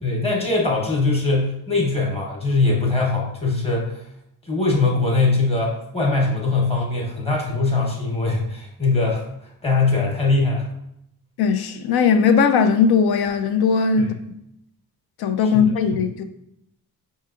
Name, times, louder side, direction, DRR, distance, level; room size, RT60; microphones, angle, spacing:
voice 1, 0.0-4.0 4.4-10.7 14.0-14.1 15.4-15.7, left 3 dB, 15° left, 1.0 m, -21 dB
voice 2, 11.4-14.4 15.2-16.2, left 6 dB, 75° left, 0.5 m, -19 dB
5.5 x 2.8 x 2.4 m
wide cardioid pair, 135°, 38 cm